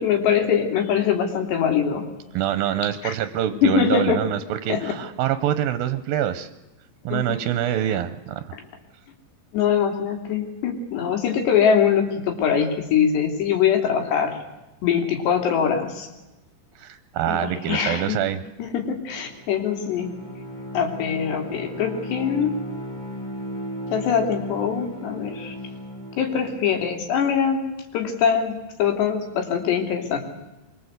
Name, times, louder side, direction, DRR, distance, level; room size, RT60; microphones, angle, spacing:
voice 1, 0.0-2.1 3.0-3.1 3.6-4.2 4.7-4.9 7.1-7.2 8.5-8.6 9.5-14.4 14.8-16.1 17.3-18.2 18.6-20.2 20.7-22.5 23.9-25.6 26.2-30.2, left 7 dB, 85° left, 4 dB, 5.1 m, -23 dB
voice 2, 2.3-6.5 7.0-8.5 16.8-18.4, right 11 dB, 70° right, 11 dB, 2.4 m, -25 dB
Bowed string instrument, 19.2-26.9, equal, 15° left, 1.6 m, -36 dB
25.5 x 22.5 x 8.1 m, 1.0 s
omnidirectional pair, 4.8 m